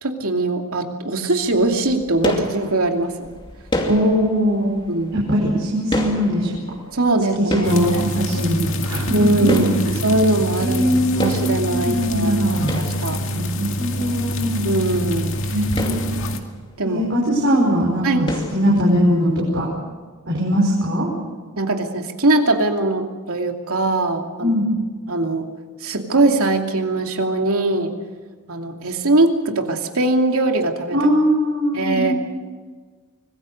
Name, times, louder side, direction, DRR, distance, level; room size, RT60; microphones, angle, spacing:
voice 1, 0.0-3.3 4.9-5.1 6.9-8.1 9.1-13.2 14.6-15.3 16.8-17.1 18.0-18.3 21.6-24.5 25.1-25.5 25.8-27.9 28.5-31.0 31.7-32.1, right 2 dB, 75° right, 3 dB, 2.7 m, -21 dB
sound 1, 1.4-10.9 11.2-13.7 14.1-14.2 14.5-14.6 14.9-15.1 15.5-17.3 17.6-17.8 18.3-19.3, left 1 dB, 20° left, 2.6 m, -30 dB
voice 2, 3.9-4.7 5.1-6.6 7.4-9.8 10.6-12.7 13.3-14.6 15.5-16.1 16.8-19.7 20.3-21.1 24.4-24.7 30.9-32.1, equal, 55° right, -4 dB, 5.3 m, -20 dB
sound 2, 7.6-16.4, equal, 60° left, 2.2 m, -26 dB
25.5 x 20.5 x 6.6 m, 1.4 s
head